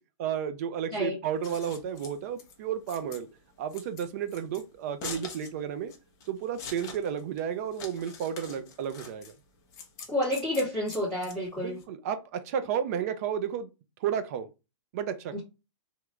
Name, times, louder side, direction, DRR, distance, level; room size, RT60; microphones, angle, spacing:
voice 1, 0.2-3.3 3.6-5.9 6.3-9.3 11.6-13.7 14.0-14.5 14.9-15.4, right 8 dB, 30° right, 0.3 m, -32 dB
Scissors, 1.2-11.8, left 5 dB, 20° left, 0.6 m, -45 dB
voice 2, 10.1-11.8 15.3-15.4, left 1 dB, ahead, 1.5 m, -29 dB
2.9 x 2.4 x 3.2 m
hypercardioid pair, 160°, 17 cm